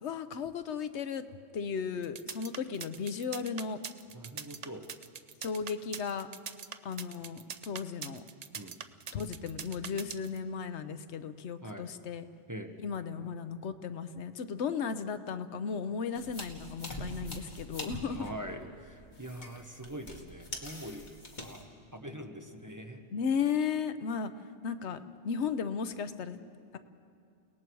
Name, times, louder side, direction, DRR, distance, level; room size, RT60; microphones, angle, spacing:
voice 1, 0.0-1.2 1.5-3.8 5.4-6.3 6.8-8.2 9.1-12.2 12.8-18.2 23.1-24.3 24.6-25.0 25.2-26.4, left 6 dB, 80° left, 11 dB, 1.1 m, -35 dB
sound 1, 2.0-10.4, right 7 dB, 45° right, 0.6 m, -42 dB
voice 2, 4.1-4.9 8.5-8.8 11.6-11.9 12.5-12.7 18.0-21.1 21.4-21.6 21.9-23.0, equal, 15° right, 4 dB, 1.0 m, -43 dB
sound 2, 16.2-21.6, left 1 dB, 45° left, 2.1 m, -44 dB
30.0 x 18.5 x 4.7 m, 2.4 s
omnidirectional pair, 1.1 m